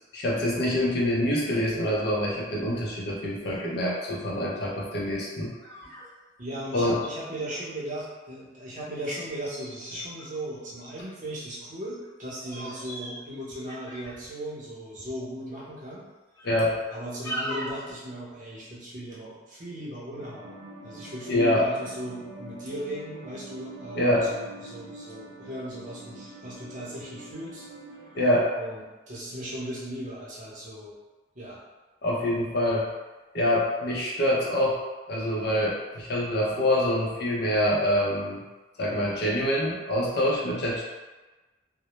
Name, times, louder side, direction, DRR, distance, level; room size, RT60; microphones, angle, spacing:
voice 1, 0.1-5.5 6.7-7.0 16.4-16.8 21.3-21.7 24.0-24.3 28.1-28.5 32.0-32.9 33.3-34.8 35.1-38.4 38.8-40.8, left 1 dB, 60° left, -4 dB, 0.5 m, -25 dB
sound 1, 2.7-2.8 3.4-3.6 4.1-4.2 5.1-6.1 6.4-6.5 6.6-7.1 9.2-11.3 12.0-12.1 12.4-13.2 13.5-14.3 15.0-15.2 15.7-15.8 16.4-16.9 17.2-17.8, right 1 dB, 15° left, 0.6 m, -39 dB
voice 2, 6.4-16.1 16.9-20.5 20.8-27.6 28.6-31.0 31.3-31.6, right 1 dB, 45° right, -7 dB, 0.7 m, -37 dB
Ambient Piano Drone, 20.2-28.4, right 2 dB, 90° right, 0.5 m, -45 dB
2.1 x 2.0 x 2.9 m, 1.2 s
head